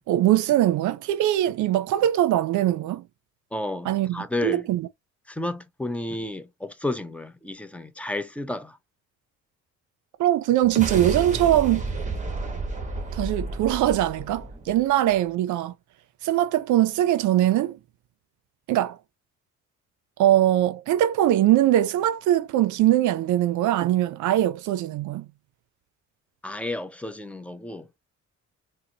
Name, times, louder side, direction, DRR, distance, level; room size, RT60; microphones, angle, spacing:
voice 1, 0.1-3.0 3.9-4.9 10.2-11.9 13.1-15.7 16.2-17.8 18.7-19.0 20.2-25.3, right 13 dB, 75° right, 0.5 m, -22 dB
voice 2, 3.5-4.7 5.3-8.8 26.4-28.0, left 1 dB, 5° left, 0.5 m, -32 dB
sound 1, 10.6-15.1, right 3 dB, 25° right, 1.1 m, -31 dB
3.8 x 2.1 x 2.7 m
cardioid pair, 90°, 30 cm